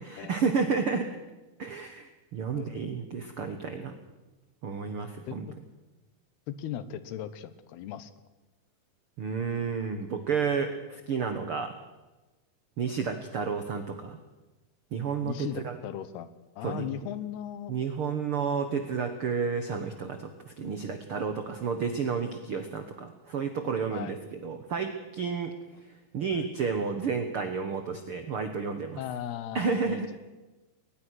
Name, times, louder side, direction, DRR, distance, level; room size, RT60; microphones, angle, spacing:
voice 1, 0.1-1.1 1.6-3.9 4.6-5.4 9.2-11.7 12.8-14.2 14.9-15.8 16.6-16.9 17.7-25.5 26.1-29.0 29.5-30.1, right 5 dB, 85° right, 8 dB, 1.2 m, -31 dB
voice 2, 5.2-5.6 6.5-8.1 15.2-17.7 23.9-24.2 26.3-26.5 29.0-30.0, left 10 dB, 85° left, 14 dB, 3.1 m, -37 dB
22.0 x 19.5 x 6.4 m, 1.1 s
omnidirectional pair, 4.5 m